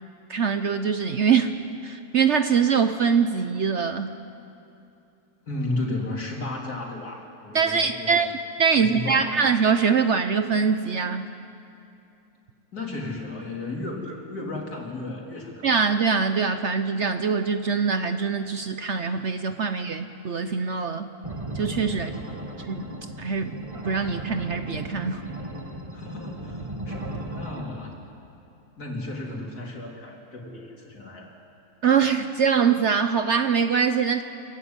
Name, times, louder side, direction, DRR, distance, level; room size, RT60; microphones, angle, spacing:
voice 1, 0.3-1.5 1.8-4.1 7.5-8.3 8.6-11.3 15.6-21.1 21.5-22.1 22.7-22.9 23.2-23.5 23.8-25.2 31.8-34.2, right 6 dB, 55° right, 9 dB, 0.9 m, -23 dB
voice 2, 5.5-8.2 8.7-9.5 12.7-15.7 21.9-22.6 25.9-28.0 28.8-31.4, left 2 dB, 70° left, -1 dB, 3.7 m, -34 dB
sound 1, 21.2-27.6, right 1 dB, 20° right, 1.8 m, -36 dB
26.5 x 15.5 x 9.6 m, 2.7 s
omnidirectional pair, 1.7 m